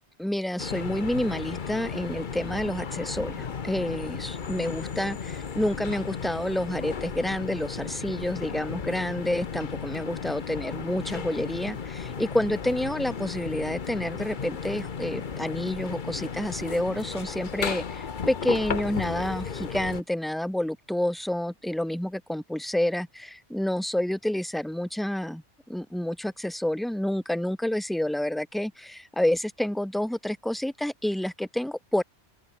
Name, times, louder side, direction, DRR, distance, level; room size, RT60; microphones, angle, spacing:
voice 1, 0.2-5.2 5.6-25.4 25.7-32.0, left 1 dB, ahead, 0.9 m, -29 dB
sound 1, 0.6-20.0, left 6 dB, 45° left, 1.1 m, -35 dB
open air
omnidirectional pair, 1.2 m